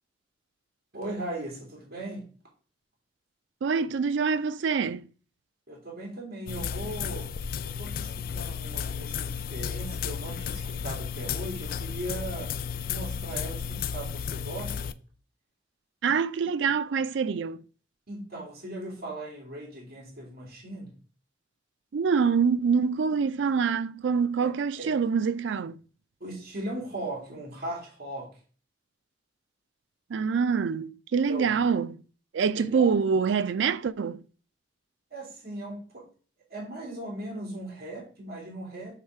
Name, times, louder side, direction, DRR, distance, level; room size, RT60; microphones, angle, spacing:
voice 1, 0.9-2.3 5.7-7.4 7.6-12.5 12.8-15.0 18.1-21.0 24.4-24.5 24.8-24.9 26.2-28.4 31.3-31.5 32.5-33.0 35.1-36.1 36.5-38.9, right 1 dB, 55° right, 2.5 m, -38 dB
voice 2, 3.6-5.0 16.0-17.6 21.9-25.8 30.1-32.0 32.3-34.2, right 6 dB, 75° right, 0.4 m, -25 dB
sound 1, 6.5-14.9, left 7 dB, 50° left, 0.3 m, -33 dB
7.6 x 3.2 x 4.6 m
head